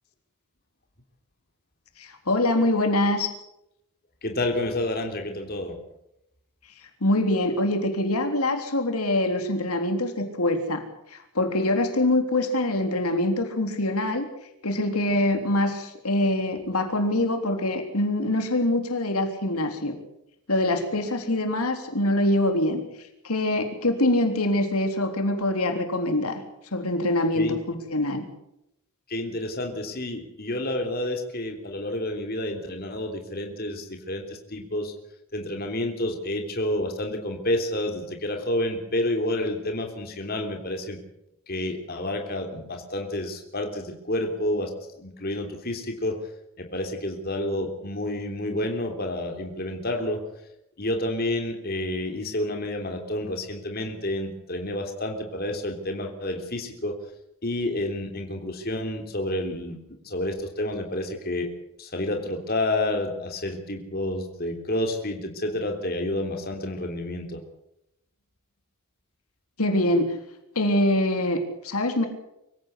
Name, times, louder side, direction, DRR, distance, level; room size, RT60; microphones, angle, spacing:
voice 1, 2.0-3.3 7.0-10.8 11.1-14.3 14.6-20.0 20.5-22.8 23.2-26.4 26.7-28.2 69.6-70.1 70.6-72.1, left 1 dB, 85° left, 6 dB, 3.5 m, -24 dB
voice 2, 4.2-5.8 27.3-27.6 29.1-34.9 35.3-41.0 41.5-44.7 45.0-46.2 46.6-50.2 50.8-56.9 57.4-59.8 60.0-61.5 61.8-67.4, left 1 dB, 45° left, 4 dB, 3.3 m, -29 dB
24.5 x 16.0 x 8.3 m, 0.83 s
head